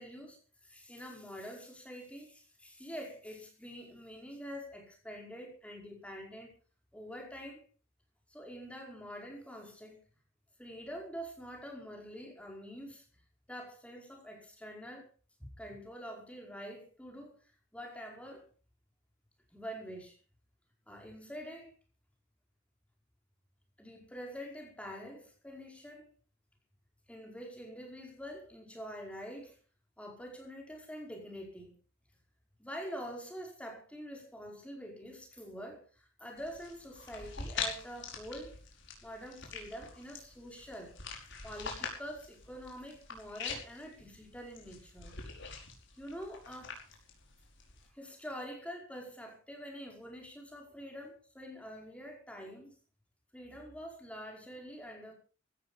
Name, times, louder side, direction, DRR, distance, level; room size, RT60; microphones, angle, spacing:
voice 1, 0.0-6.5 6.9-7.6 8.3-10.0 10.6-13.1 13.5-15.1 15.4-17.4 17.7-18.5 19.5-20.2 20.9-21.8 23.8-26.1 27.1-29.6 30.0-31.7 32.6-38.6 39.0-41.0 41.4-45.2 46.0-46.7 47.9-52.7 53.3-55.1, equal, 5° left, 1 dB, 5.1 m, -46 dB
sound 1, 36.4-47.9, left 5 dB, 60° left, 5.2 m, -44 dB
16.5 x 13.0 x 5.5 m, 0.39 s
head